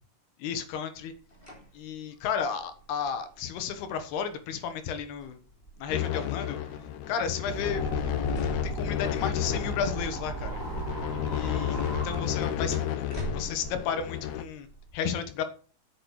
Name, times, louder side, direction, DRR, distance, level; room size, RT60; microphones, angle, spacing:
voice 1, 0.4-1.1 1.7-5.4 5.8-6.6 7.1-7.8 8.6-10.6 11.2-12.8 13.3-14.7 14.9-15.4, left 7 dB, 90° left, 9 dB, 3.4 m, -33 dB
sound 1, 0.9-14.9, equal, 15° left, 2.7 m, -47 dB
sound 2, 5.9-14.4, left 12 dB, 70° left, 1.8 m, -32 dB
sound 3, 7.4-12.8, right 5 dB, 25° right, 2.4 m, -37 dB
9.0 x 7.7 x 6.6 m, 0.39 s
omnidirectional pair, 4.4 m